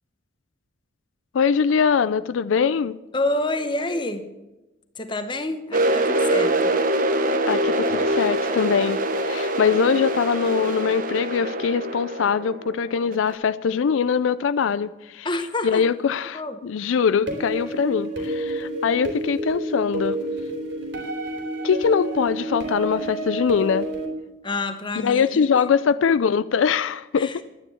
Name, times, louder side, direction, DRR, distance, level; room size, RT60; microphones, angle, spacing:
voice 1, 1.3-3.0 7.5-15.3 15.6-20.2 21.6-23.9 25.0-27.3, left 6 dB, 85° left, 0.4 m, -22 dB
voice 2, 3.1-4.2 4.9-6.7 15.2-15.9 16.3-16.6 24.4-25.6 27.2-27.4, left 2 dB, 25° left, 1.0 m, -28 dB
sound 1, 5.7-13.3, right 1 dB, 45° right, 1.0 m, -24 dB
sound 2, 17.3-24.1, right 1 dB, 75° right, 3.3 m, -29 dB
11.5 x 9.8 x 7.0 m
head